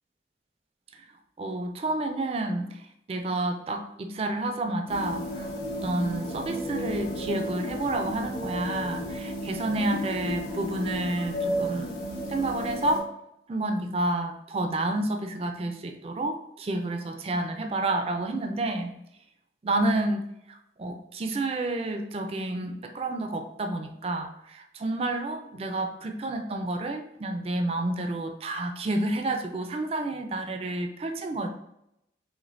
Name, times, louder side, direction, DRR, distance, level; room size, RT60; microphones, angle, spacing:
voice 1, 1.4-11.9 12.3-13.1 13.5-18.9 19.6-31.5, right 2 dB, 35° right, 5 dB, 0.3 m, -30 dB
sound 1, 4.9-13.0, equal, 65° left, 1.3 m, -33 dB
5.0 x 3.1 x 2.5 m, 0.81 s
head